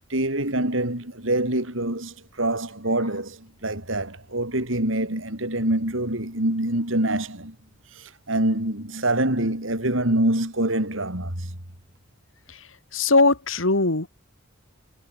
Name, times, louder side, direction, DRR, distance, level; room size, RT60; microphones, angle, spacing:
voice 1, 0.1-7.6 8.0-11.5, right 1 dB, 85° right, 6.9 m, -25 dB
voice 2, 12.9-14.1, left 3 dB, 85° left, 2.8 m, -20 dB
head